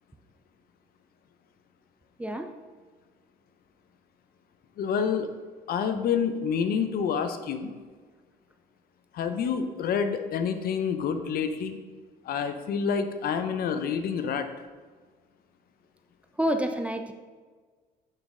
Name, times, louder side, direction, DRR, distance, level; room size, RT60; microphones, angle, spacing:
voice 1, 2.2-2.5 16.4-17.1, right 1 dB, 10° right, 6 dB, 0.5 m, -28 dB
voice 2, 4.8-5.3 5.7-7.7 9.1-11.8 12.3-14.5, left 6 dB, 60° left, 8 dB, 0.7 m, -28 dB
6.5 x 6.4 x 3.7 m, 1.5 s
cardioid pair, 110°, 17 cm